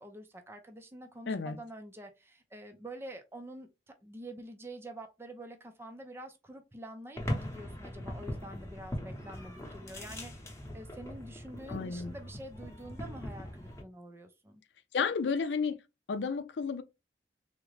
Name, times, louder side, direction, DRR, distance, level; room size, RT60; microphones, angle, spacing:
voice 1, 0.0-14.6, right 1 dB, 15° right, 0.4 m, -47 dB
voice 2, 1.3-1.6 11.7-12.2 14.9-15.8 16.1-16.8, left 5 dB, 90° left, 0.5 m, -32 dB
sound 1, 7.1-13.8, left 1 dB, 15° left, 0.9 m, -40 dB
3.6 x 2.1 x 3.2 m
head